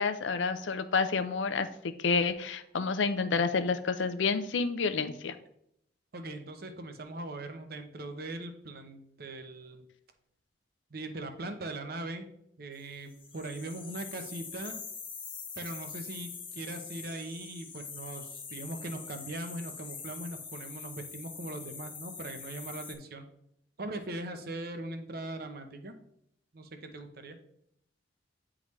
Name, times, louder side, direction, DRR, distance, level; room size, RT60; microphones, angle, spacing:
voice 1, 0.0-5.4, left 4 dB, 90° left, 10 dB, 0.5 m, -29 dB
voice 2, 6.1-9.9 10.9-12.3 12.6-14.8 15.6-23.3 23.8-26.0 26.5-27.4, right 2 dB, 55° right, 6 dB, 0.8 m, -40 dB
sound 1, 13.1-22.9, left 5 dB, 30° left, 0.9 m, -44 dB
9.4 x 3.7 x 3.1 m, 0.73 s
head